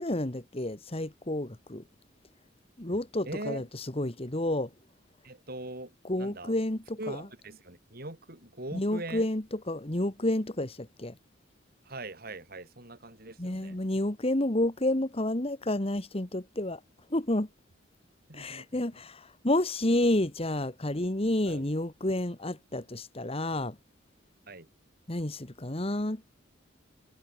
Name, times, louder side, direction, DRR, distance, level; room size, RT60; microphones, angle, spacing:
voice 1, 0.0-1.8 2.8-4.7 6.0-7.2 8.7-11.1 13.4-16.8 17.1-17.5 18.3-23.7 25.1-26.2, left 1 dB, 30° left, 1.6 m, -30 dB
voice 2, 3.2-3.6 5.2-6.6 7.0-9.3 11.9-13.8 18.3-19.0 21.5-21.7 24.5-24.7, right 2 dB, 50° right, 5.6 m, -41 dB
head